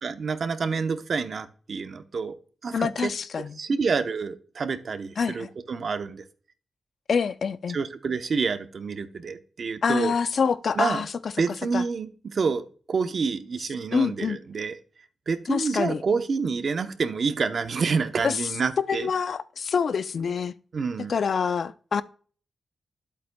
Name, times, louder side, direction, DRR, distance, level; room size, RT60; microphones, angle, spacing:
voice 1, 0.0-2.3 2.6-3.1 3.6-6.2 7.7-10.1 10.8-11.0 11.4-14.8 15.3-19.1 20.7-21.1, right 5 dB, 60° right, 0.8 m, -28 dB
voice 2, 2.7-3.6 5.2-5.5 7.1-7.8 9.8-11.9 13.9-14.4 15.5-16.0 18.2-18.5 18.8-20.5 21.1-22.0, left 6 dB, 65° left, 0.4 m, -26 dB
11.0 x 8.4 x 2.3 m
cardioid pair, 90°, 0 cm